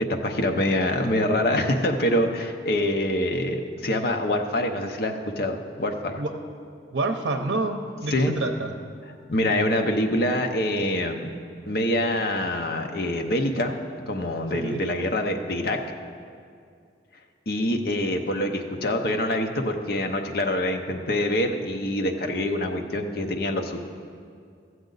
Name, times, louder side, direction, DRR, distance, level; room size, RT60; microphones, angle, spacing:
voice 1, 0.0-6.2 8.1-8.3 9.3-11.3 11.7-13.7 14.1-15.8 17.5-23.8, left 1 dB, 55° left, 4 dB, 0.7 m, -25 dB
voice 2, 6.9-8.7 14.5-14.8, right 2 dB, 75° right, 4 dB, 0.6 m, -28 dB
13.0 x 7.8 x 4.0 m, 2.3 s
head